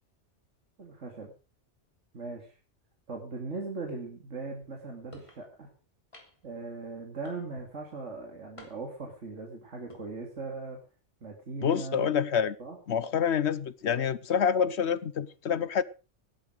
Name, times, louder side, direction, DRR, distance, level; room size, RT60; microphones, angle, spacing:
voice 1, 0.8-1.3 2.1-2.5 3.1-5.7 6.4-10.8 11.2-12.1 12.6-12.8, right 3 dB, 75° right, 2.8 m, -39 dB
sound 1, 5.1-5.4 6.1-6.5 7.2-7.7 8.6-9.0 9.7-10.0, left 1 dB, 25° left, 2.9 m, -51 dB
voice 2, 11.6-12.6 12.9-15.8, left 7 dB, 65° left, 1.1 m, -27 dB
17.0 x 11.0 x 4.9 m
omnidirectional pair, 1.2 m